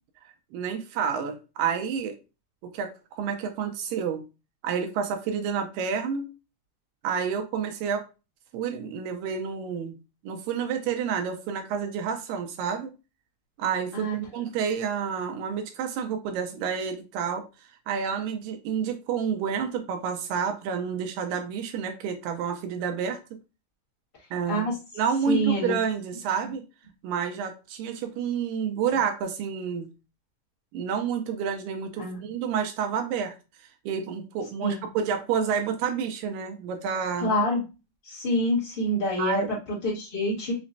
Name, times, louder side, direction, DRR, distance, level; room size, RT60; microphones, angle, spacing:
voice 1, 0.5-2.1 2.7-2.9 3.2-4.2 4.6-6.3 7.0-8.1 8.5-10.0 10.2-12.9 13.6-17.4 17.9-23.2 24.3-24.7 25.0-26.6 27.0-29.9 30.7-33.4 33.9-37.3 39.2-39.5, right 7 dB, 80° right, 2.1 m, -29 dB
voice 2, 13.9-14.4 24.5-24.7 25.2-25.7 32.0-32.2 34.6-34.7 37.2-37.6 38.0-40.5, equal, 35° left, 0.9 m, -27 dB
5.8 x 2.1 x 2.6 m
omnidirectional pair, 4.2 m